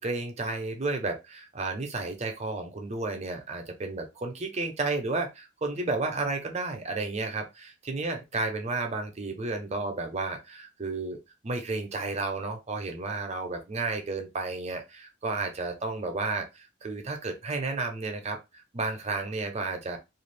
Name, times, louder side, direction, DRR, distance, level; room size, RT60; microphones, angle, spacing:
voice 1, 0.0-11.2 11.4-20.0, right 3 dB, 30° right, 4 dB, 0.6 m, -32 dB
2.5 x 2.4 x 3.3 m, 0.24 s
head